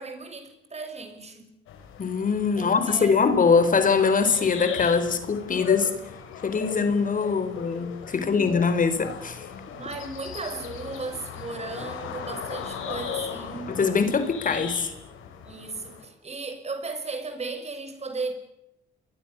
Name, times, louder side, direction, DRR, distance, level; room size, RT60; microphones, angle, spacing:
voice 1, 0.0-1.5 2.6-3.2 8.1-8.6 9.7-13.8 15.4-18.3, right 3 dB, 35° right, 6.3 m, -36 dB
sound 1, 1.7-16.1, left 8 dB, 85° left, 5.6 m, -38 dB
voice 2, 2.0-5.9 6.4-9.5 13.7-14.9, left 5 dB, 40° left, 4.2 m, -23 dB
29.5 x 22.5 x 7.0 m
cardioid pair, 90°, 20 cm